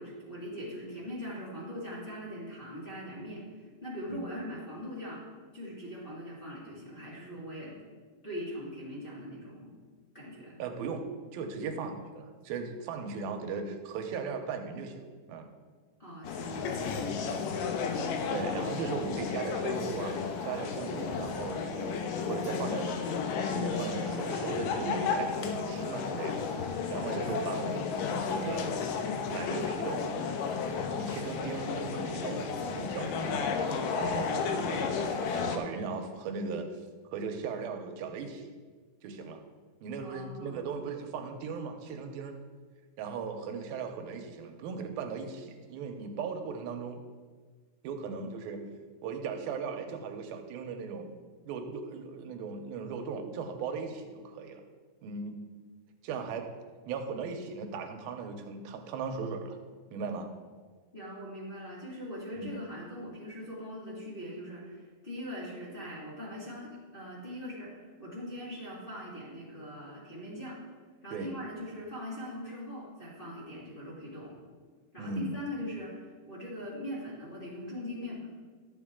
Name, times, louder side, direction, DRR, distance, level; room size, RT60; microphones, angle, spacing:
voice 1, 0.0-3.4 3.8-5.2 5.5-7.8 8.2-9.8 10.1-10.6 16.0-17.5 40.0-40.8 60.9-70.6 71.0-74.4 74.9-78.3, equal, 35° left, -7 dB, 0.9 m, -41 dB
voice 2, 10.6-11.1 11.3-15.0 15.3-15.5 17.3-17.6 18.3-28.7 29.3-30.1 31.0-33.4 34.0-36.7 37.1-38.5 39.0-39.4 39.8-42.4 43.0-47.0 47.8-48.7 49.0-51.1 51.5-54.6 55.0-55.4 56.0-56.5 56.9-59.6 59.9-60.3 62.4-62.5 71.1-71.3 75.0-75.4, right 5 dB, 80° right, 5 dB, 2.5 m, -38 dB
sound 1, 16.2-35.6, left 5 dB, 75° left, 2.1 m, -33 dB
13.0 x 7.4 x 3.6 m, 1.5 s
omnidirectional pair, 4.5 m